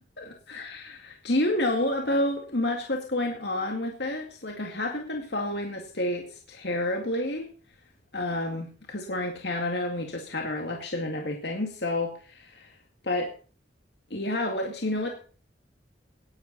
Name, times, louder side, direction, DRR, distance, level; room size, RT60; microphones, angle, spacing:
voice 1, 0.2-7.5 8.1-12.8 13.0-13.3 14.1-15.2, left 1 dB, 60° left, 2 dB, 2.2 m, -29 dB
18.0 x 11.0 x 4.2 m, 0.38 s
head